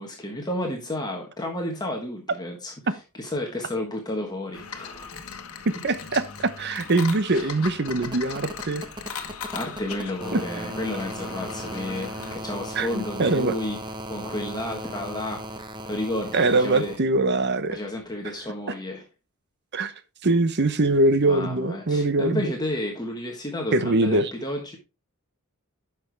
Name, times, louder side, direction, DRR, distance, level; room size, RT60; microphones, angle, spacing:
voice 1, 0.0-5.1 7.3-7.5 9.5-17.0 17.7-19.0 21.2-24.8, left 1 dB, 20° left, 1.4 m, -32 dB
Forcefield destroyed loop, 4.5-12.4, left 6 dB, 70° left, 1.3 m, -39 dB
sound 1, 5.7-5.8 6.1-17.0 18.4-18.5, right 1 dB, 20° right, 0.9 m, -38 dB
voice 2, 5.8-8.8 10.3-10.4 12.8-13.5 16.3-17.8 19.7-19.9 20.2-22.5 23.7-24.3, right 2 dB, 50° right, 0.9 m, -22 dB
10.0 x 6.0 x 3.4 m
head